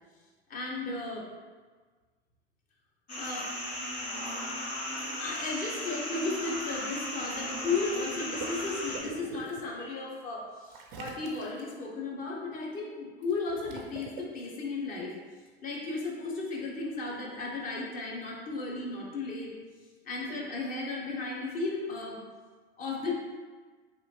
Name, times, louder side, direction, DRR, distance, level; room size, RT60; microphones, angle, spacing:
voice 1, 0.5-1.2 3.1-3.5 5.2-15.2 15.6-19.5 20.0-22.2 22.8-23.1, left 3 dB, 25° left, -2 dB, 0.6 m, -35 dB
sound 1, 3.1-9.0, left 1 dB, 80° left, 0.8 m, -36 dB
Water / Liquid, 7.1-9.6 10.7-11.7 13.2-14.2, right 5 dB, 30° right, 0.4 m, -45 dB
2.8 x 2.5 x 2.7 m, 1.4 s
figure-of-eight pair, 85°, 32 cm